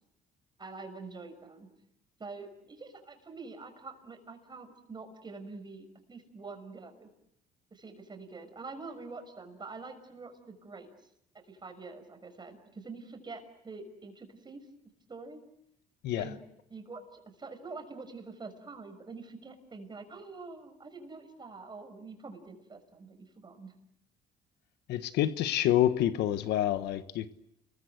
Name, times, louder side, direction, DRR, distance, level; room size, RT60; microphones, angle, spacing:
voice 1, 0.6-1.7 2.2-7.1 7.7-10.9 11.5-14.6 15.1-15.4 16.2-16.4 16.7-23.7, right 3 dB, 25° right, 6 dB, 6.3 m, -46 dB
voice 2, 24.9-27.3, left 12 dB, 80° left, 11 dB, 1.4 m, -27 dB
30.0 x 22.5 x 8.0 m, 0.80 s
cardioid pair, 110°, 17 cm